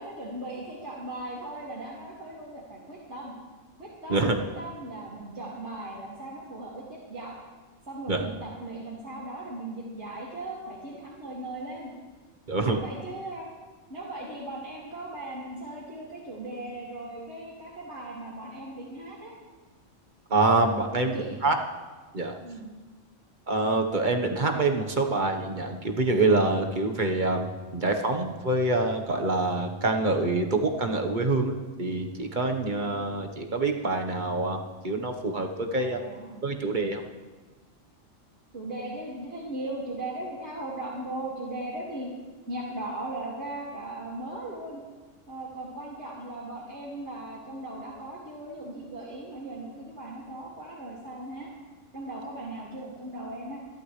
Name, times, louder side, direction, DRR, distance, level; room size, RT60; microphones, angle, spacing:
voice 1, 0.0-3.3 3.8-7.3 7.9-11.9 12.6-13.5 13.9-19.3 21.0-21.4 22.4-22.7 35.7-36.4 38.5-42.1 42.5-44.8 45.3-51.5 51.9-53.6, right 2 dB, 60° right, -7 dB, 2.9 m, -38 dB
voice 2, 12.5-12.8 20.3-21.6 22.1-22.3 23.5-34.6 34.8-36.0 36.4-37.0, right 2 dB, 40° right, 3 dB, 1.4 m, -26 dB
28.0 x 12.0 x 3.3 m, 1.3 s
omnidirectional pair, 1.3 m